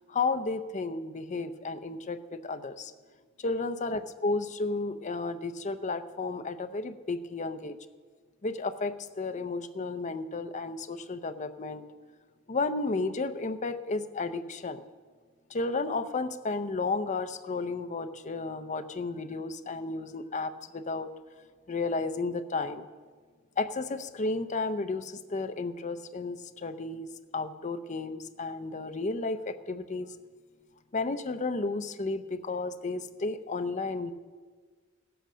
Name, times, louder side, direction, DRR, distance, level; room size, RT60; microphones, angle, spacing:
voice 1, 0.0-2.9 3.4-7.8 8.4-11.9 12.5-14.9 15.5-21.1 21.7-22.9 23.6-30.2 30.9-34.1, left 3 dB, 35° left, 9 dB, 0.6 m, -33 dB
16.5 x 8.0 x 6.2 m, 1.5 s
head